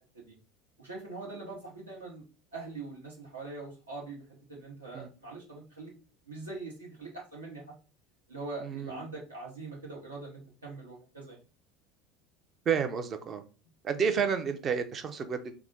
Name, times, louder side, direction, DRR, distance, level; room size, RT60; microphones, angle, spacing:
voice 1, 0.8-2.2 2.5-5.9 6.3-7.6 8.3-11.4, right 3 dB, 80° right, -3 dB, 1.0 m, -43 dB
voice 2, 8.6-9.0 12.7-13.4 13.8-15.5, right 6 dB, 35° right, 8 dB, 0.5 m, -30 dB
3.4 x 2.0 x 3.6 m, 0.34 s
figure-of-eight pair, 70°, 0 cm